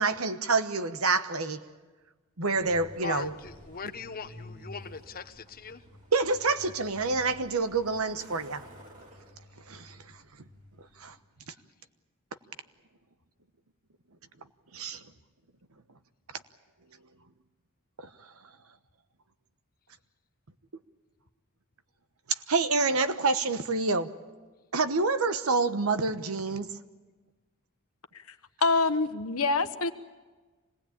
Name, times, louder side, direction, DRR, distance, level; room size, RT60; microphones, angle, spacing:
voice 1, 0.0-1.7 2.4-3.4 6.1-8.6 9.7-10.0 11.0-11.1 14.7-15.0 18.0-18.1 22.5-24.1 24.7-26.7, right 3 dB, 90° right, 1.2 m, -27 dB
Truck, 2.5-11.3, left 1 dB, 40° right, 3.6 m, -51 dB
voice 2, 3.0-5.8, left 5 dB, 45° left, 1.1 m, -40 dB
voice 3, 28.6-29.9, left 3 dB, 90° left, 1.2 m, -25 dB
26.0 x 19.0 x 8.7 m
head